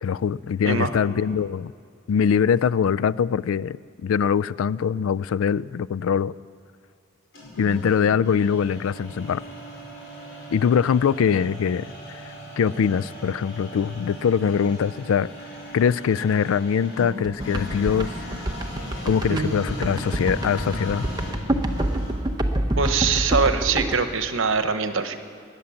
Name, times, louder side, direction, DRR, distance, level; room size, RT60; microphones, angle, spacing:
voice 1, 0.0-1.7 2.1-6.3 7.6-9.4 10.5-11.9 12.6-15.3 15.7-18.1 19.1-21.1, left 7 dB, 85° left, 20 dB, 0.3 m, -22 dB
sound 1, 7.3-22.3, equal, 60° left, 5.1 m, -37 dB
sound 2, 17.2-23.9, right 1 dB, 20° right, 0.8 m, -26 dB
voice 2, 19.3-20.2 22.8-25.2, right 5 dB, 75° right, 9 dB, 1.0 m, -24 dB
19.5 x 10.0 x 7.1 m, 2.2 s
head